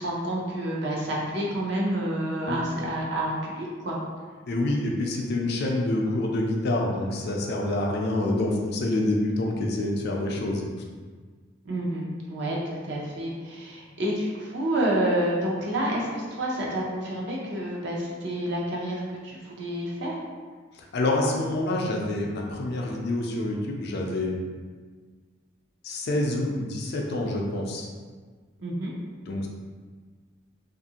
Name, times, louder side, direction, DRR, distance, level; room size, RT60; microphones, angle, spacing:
voice 1, 0.0-4.0 11.6-12.0 12.3-12.6 12.8-20.1 28.6-28.9, right 1 dB, 60° right, -3 dB, 0.6 m, -29 dB
voice 2, 4.5-10.7 20.7-24.4 25.8-27.9 29.3-29.5, left 1 dB, 55° left, 0 dB, 0.4 m, -27 dB
2.7 x 2.5 x 2.8 m, 1.5 s
head